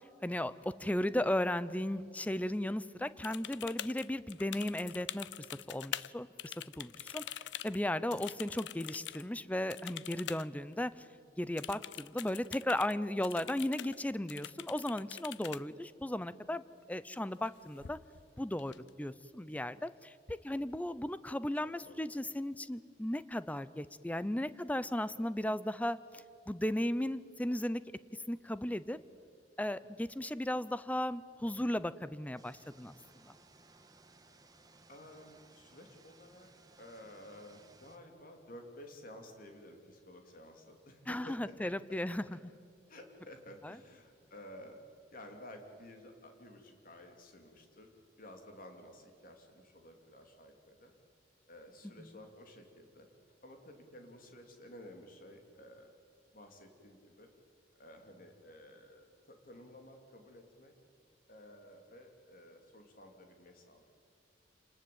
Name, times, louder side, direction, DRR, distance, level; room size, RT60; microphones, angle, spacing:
voice 1, 0.2-5.3 5.7-7.2 7.6-11.1 11.4-16.6 16.9-18.0 18.4-27.8 28.3-29.0 29.6-32.9 33.2-33.3 41.1-42.2 43.6-43.8, left 1 dB, 10° left, 16 dB, 0.6 m, -36 dB
sound 1, 3.2-6.1 6.4-9.2 9.7-10.5 10.7-10.8 11.6-12.9 13.2-14.0 14.3-15.6 17.3-17.5 17.8-18.3 18.6-19.2, left 11 dB, 80° left, 0.6 m, -44 dB
voice 2, 21.6-22.3 34.9-36.5 36.8-41.5 42.9-44.8 45.1-47.9 48.2-50.9 51.5-53.1 53.4-55.9 56.3-57.3 57.7-60.7 61.3-63.8, left 1 dB, 50° left, 4 dB, 3.2 m, -53 dB
sound 2, 32.4-38.0, right 3 dB, 20° right, 1.5 m, -62 dB
28.0 x 20.0 x 8.8 m, 2.4 s
head